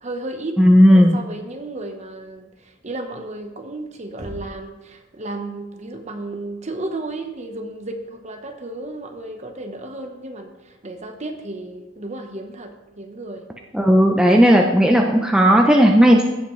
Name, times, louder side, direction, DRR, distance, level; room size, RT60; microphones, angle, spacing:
voice 1, 0.0-13.5, right 2 dB, 35° right, 5 dB, 1.0 m, -33 dB
voice 2, 0.6-1.2 13.7-16.2, equal, 5° right, 1 dB, 0.6 m, -13 dB
Knock, 4.2-4.8, right 1 dB, 55° right, 3.2 m, -37 dB
16.0 x 5.8 x 3.2 m, 1.1 s
head